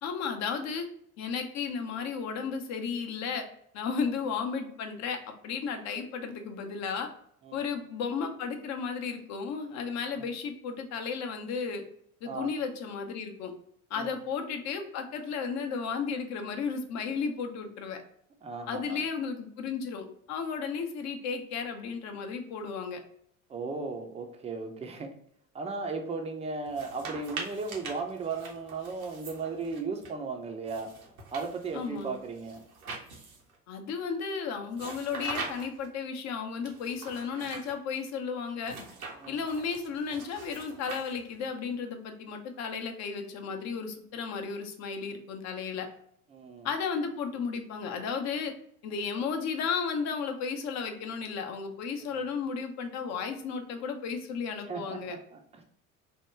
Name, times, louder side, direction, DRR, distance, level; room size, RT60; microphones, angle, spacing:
voice 1, 0.0-0.9 1.2-3.4 3.7-5.2 5.4-7.1 7.5-11.8 12.2-13.5 13.9-18.0 18.7-23.0 31.7-32.2 33.7-38.8 39.3-45.9 46.6-48.5 48.8-55.2, left 5 dB, 40° left, 5 dB, 0.7 m, -34 dB
voice 2, 18.4-19.0 23.5-25.1 25.5-30.9 31.3-32.6 39.2-39.4 46.3-46.7 54.7-55.6, right 4 dB, 15° right, 4 dB, 0.5 m, -36 dB
sound 1, 26.7-30.1 30.7-33.6 34.7-35.9 36.7-37.7 38.6-41.5, right 4 dB, 75° right, 0.9 m, -43 dB
3.5 x 2.2 x 4.3 m, 0.68 s
figure-of-eight pair, 65°, 43 cm